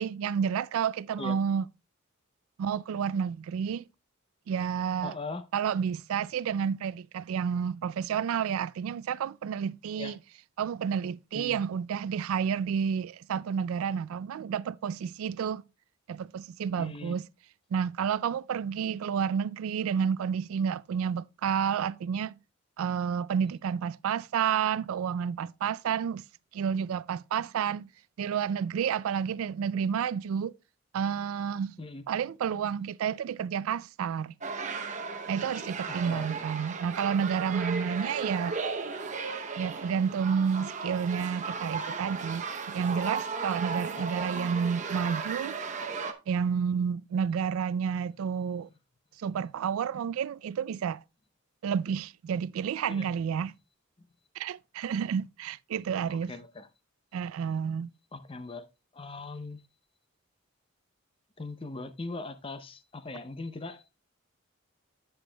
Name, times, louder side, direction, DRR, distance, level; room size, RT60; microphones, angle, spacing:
voice 1, 0.0-1.6 2.6-3.8 4.5-5.1 5.5-10.1 10.6-15.6 16.1-17.2 17.7-22.4 22.8-26.2 26.5-27.9 28.2-30.5 30.9-31.8 32.1-34.3 35.3-38.6 39.6-45.6 46.3-48.7 49.2-51.0 51.6-53.5 54.4-56.3 57.1-57.9, right 7 dB, 80° right, 0.3 m, -30 dB
voice 2, 5.0-5.4 9.9-10.2 11.3-11.6 16.8-17.2 31.8-32.1 35.9-36.3 44.2-44.3 48.2-48.4 52.9-53.1 56.1-56.7 58.1-58.7 58.9-59.6 61.4-63.9, left 3 dB, 25° left, 0.6 m, -40 dB
sound 1, 34.4-46.1, right 4 dB, 35° right, 0.7 m, -35 dB
10.0 x 7.9 x 2.2 m
head